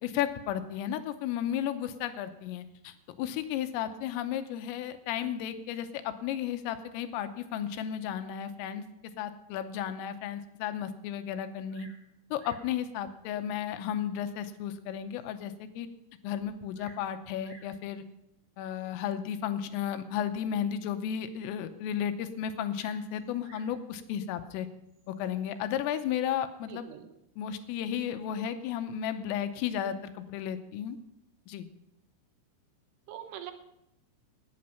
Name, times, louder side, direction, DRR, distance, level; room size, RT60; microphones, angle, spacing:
voice 1, 0.0-8.9 9.2-11.9 12.3-15.9 16.2-18.0 18.6-24.7 25.1-26.9 27.4-31.0 31.5-31.7, left 9 dB, 85° left, 9 dB, 3.4 m, -34 dB
Bird vocalization bird call bird song, 11.7-12.1 12.4-12.7 13.6-13.7 14.3-14.4 14.9-15.0 15.2-15.3 16.4-17.1 17.4-17.8 18.8-19.1 22.7-23.8 24.9-25.3, right 2 dB, 45° right, 4.2 m, -56 dB
voice 2, 26.7-27.1 33.1-33.5, right 11 dB, 80° right, 7 dB, 3.3 m, -43 dB
18.0 x 8.6 x 5.7 m, 0.83 s
omnidirectional pair, 6.0 m